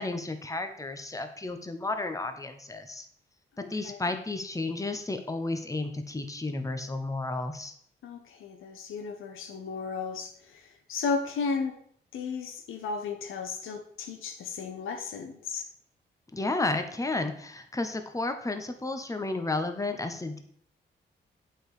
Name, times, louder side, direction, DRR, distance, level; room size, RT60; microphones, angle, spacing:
voice 1, 0.0-3.1 3.6-7.7 16.3-20.4, left 2 dB, 15° left, 7 dB, 1.0 m, -32 dB
voice 2, 3.6-4.0 8.0-11.7 12.1-15.7, left 5 dB, 85° left, 6 dB, 0.9 m, -34 dB
7.9 x 4.1 x 4.9 m, 0.64 s
supercardioid pair, 55°, 20 cm